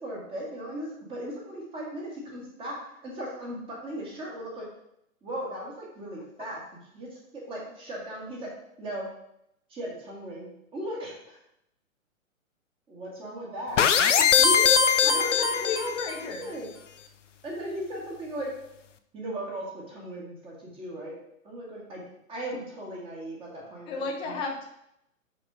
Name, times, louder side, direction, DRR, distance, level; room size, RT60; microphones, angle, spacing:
voice 1, 0.0-2.8 3.0-4.7 5.2-6.6 6.9-7.1 7.3-8.5 8.8-9.1 9.7-11.4 12.9-15.3 15.6-16.7 17.4-18.5 19.1-21.1 21.4-22.0 22.3-23.9 24.2-24.4, right 1 dB, 15° right, -2 dB, 1.9 m, -37 dB
sound 1, 13.8-16.2, left 7 dB, 60° left, 0.7 m, -21 dB
voice 2, 15.0-16.5 23.9-24.7, left 4 dB, 10° left, 2 dB, 0.7 m, -33 dB
5.9 x 5.0 x 5.0 m, 0.78 s
figure-of-eight pair, 125°, 41 cm